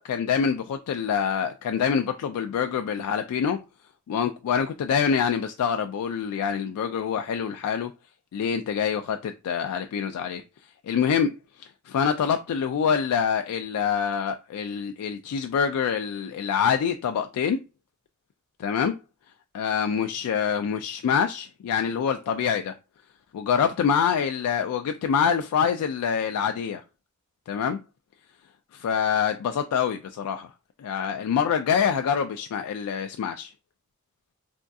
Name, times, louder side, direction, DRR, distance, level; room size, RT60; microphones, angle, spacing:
voice 1, 0.0-3.6 4.1-7.9 8.3-10.4 10.8-11.3 11.6-17.6 18.6-18.9 19.5-22.7 23.3-26.8 27.5-27.8 28.8-30.5 30.8-33.5, left 7 dB, 85° left, 0.3 m, -25 dB
3.4 x 2.3 x 2.6 m
head